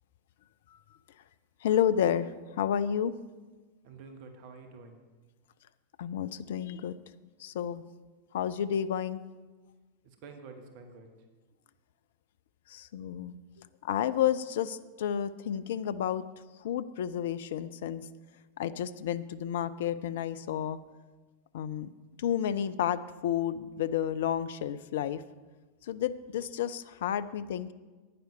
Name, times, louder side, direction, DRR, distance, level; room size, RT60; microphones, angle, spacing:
voice 1, 1.6-2.3 2.6-3.2 6.0-7.0 7.4-7.8 8.3-9.2 12.7-13.3 13.8-16.2 16.6-18.1 18.6-20.8 21.5-21.9 22.2-25.2 25.8-27.7, left 9 dB, 55° left, 14 dB, 0.4 m, -31 dB
voice 2, 3.8-5.0 10.0-11.1, right 4 dB, 45° right, 5 dB, 1.1 m, -48 dB
11.0 x 9.2 x 5.4 m, 1.3 s
figure-of-eight pair, 90°, 0 cm